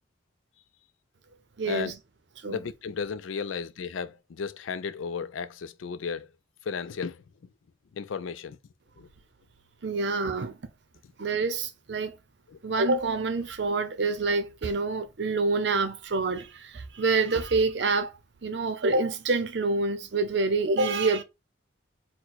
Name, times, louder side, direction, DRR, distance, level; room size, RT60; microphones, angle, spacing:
voice 1, 1.6-2.0 2.4-2.6 9.8-10.6 11.2-12.2 12.6-18.1 18.4-21.2, right 3 dB, 65° right, 0.6 m, -27 dB
voice 2, 2.5-6.3 6.6-7.2 7.9-8.6 9.0-9.1 9.9-10.0 12.5-12.6, left 6 dB, 85° left, 0.4 m, -34 dB
4.4 x 2.2 x 3.9 m
head